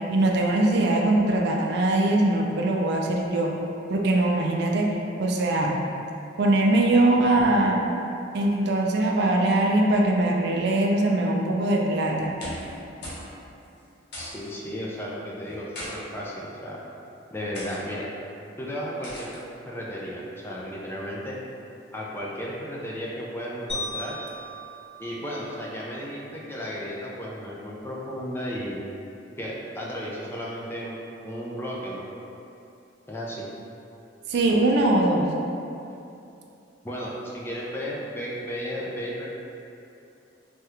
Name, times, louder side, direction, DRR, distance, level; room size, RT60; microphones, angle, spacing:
voice 1, 0.1-3.5 3.9-4.9 5.2-5.8 6.4-7.8 8.3-12.3 34.3-35.3, right 2 dB, 60° right, 0 dB, 0.4 m, -21 dB
sound 1, 12.3-12.8 13.0-13.3 13.6-13.7 14.1-14.5 15.4-15.9 16.7-16.9 17.5-17.8 19.0-19.4, left 1 dB, 65° left, 0.8 m, -38 dB
voice 2, 14.2-16.8 17.3-18.1 18.6-21.4 21.9-24.2 25.0-28.8 29.4-31.0 31.2-32.1 33.1-33.5 36.8-39.3, equal, 15° left, -4 dB, 0.4 m, -34 dB
sound 2, 23.7-26.1, left 1 dB, 35° left, 0.8 m, -37 dB
3.4 x 2.3 x 2.9 m, 2.7 s
head